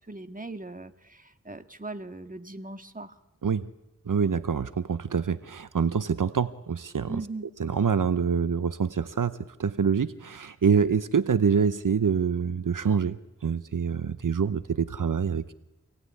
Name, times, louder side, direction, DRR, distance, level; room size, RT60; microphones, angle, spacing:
voice 1, 0.1-3.1 7.1-7.5, right 2 dB, 25° right, 8 dB, 1.9 m, -39 dB
voice 2, 4.1-7.2 7.6-15.5, right 6 dB, 75° right, 14 dB, 0.8 m, -26 dB
27.0 x 18.0 x 9.7 m, 0.97 s
wide cardioid pair, 40°, 32 cm